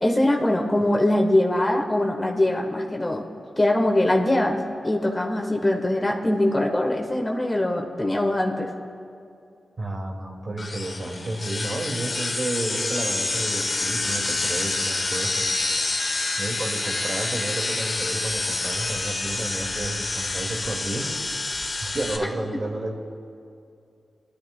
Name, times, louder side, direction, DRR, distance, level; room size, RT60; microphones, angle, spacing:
voice 1, 0.0-3.3 3.6-8.7, left 1 dB, 25° left, 1 dB, 1.3 m, -22 dB
voice 2, 9.8-15.5 16.4-21.1 21.8-22.9, right 2 dB, 55° right, -1 dB, 2.0 m, -31 dB
sound 1, 10.6-22.2, left 3 dB, 55° left, 1.2 m, -27 dB
20.0 x 12.0 x 2.2 m, 2.5 s
cardioid pair, 45°, 0 cm